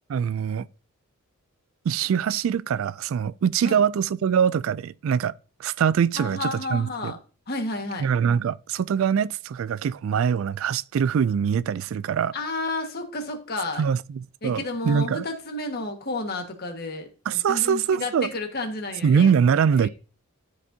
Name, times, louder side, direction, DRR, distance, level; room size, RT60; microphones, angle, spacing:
voice 1, 0.1-0.7 1.9-5.3 5.6-7.1 8.0-12.3 13.8-15.3 17.3-18.3 19.0-19.9, right 7 dB, 65° right, 0.3 m, -23 dB
voice 2, 6.1-7.2 7.5-8.1 12.3-13.9 14.4-19.3 19.8-19.9, left 2 dB, 45° left, 1.6 m, -31 dB
13.0 x 5.2 x 2.7 m
head